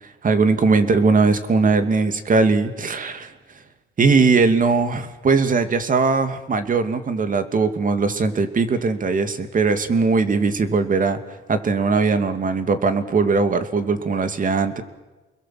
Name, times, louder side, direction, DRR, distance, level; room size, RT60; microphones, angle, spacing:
voice 1, 0.0-3.3 4.0-11.2 11.5-14.8, right 4 dB, 45° right, 9 dB, 2.6 m, -20 dB
30.0 x 21.5 x 7.8 m, 1.1 s
cardioid pair, 90°, 20 cm